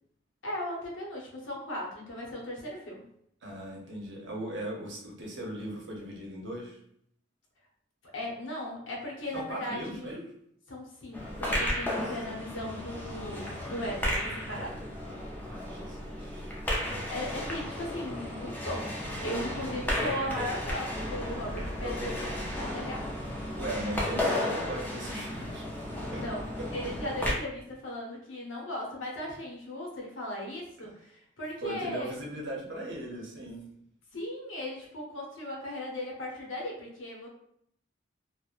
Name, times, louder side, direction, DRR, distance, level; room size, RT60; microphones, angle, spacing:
voice 1, 0.4-3.1 8.1-10.1 10.7-14.8 17.1-23.1 26.1-32.2 34.1-37.3, left 1 dB, 90° left, -2 dB, 0.7 m, -37 dB
voice 2, 3.4-6.8 9.3-10.2 15.4-16.5 21.8-22.2 23.6-25.7 26.1-26.2 30.8-30.9 31.6-33.7, right 1 dB, 70° right, -1 dB, 0.7 m, -38 dB
sound 1, 11.1-27.3, left 1 dB, 10° left, 0.4 m, -34 dB
3.0 x 2.0 x 2.3 m, 0.70 s
head